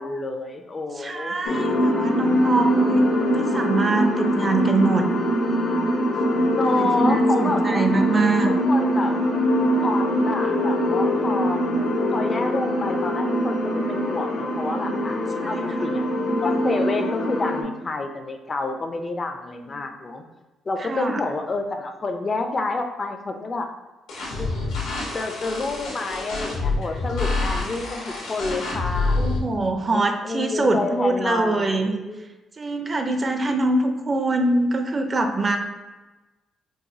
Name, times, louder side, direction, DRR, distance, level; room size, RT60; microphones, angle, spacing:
voice 1, 0.0-1.4 6.5-7.8 8.4-9.2 9.8-11.6 12.1-15.2 15.5-16.0 16.4-20.2 20.7-23.7 24.4-24.5 25.1-29.4 29.9-32.2, left 3 dB, 35° left, 5 dB, 0.4 m, -28 dB
voice 2, 1.0-3.0 3.3-5.1 6.6-8.5 15.4-15.9 20.8-21.2 29.2-31.9 32.6-35.6, right 2 dB, 30° right, 5 dB, 0.4 m, -24 dB
sound 1, 1.4-17.6, equal, 70° left, 0.7 m, -23 dB
sound 2, 24.1-29.4, left 3 dB, 90° left, 1.1 m, -27 dB
4.7 x 2.3 x 2.6 m, 1.1 s
cardioid pair, 90°, 0 cm